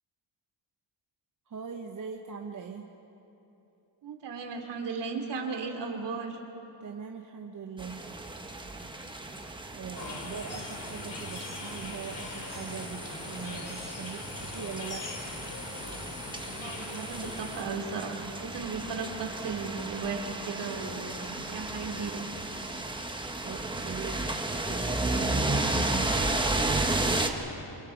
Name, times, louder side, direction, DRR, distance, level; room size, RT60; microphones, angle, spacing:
voice 1, 1.5-2.9 6.8-8.0 9.7-15.1 23.4-26.2, right 6 dB, 40° right, 2 dB, 1.0 m, -41 dB
voice 2, 4.0-6.4 16.6-21.2 21.5-22.2, right 5 dB, 65° right, 2 dB, 2.8 m, -36 dB
sound 1, 7.8-27.3, right 2 dB, 10° right, 1.2 m, -33 dB
sound 2, 9.9-17.6, left 3 dB, 45° left, 2.7 m, -41 dB
28.0 x 25.0 x 4.6 m, 3.0 s
wide cardioid pair, 145°, 45 cm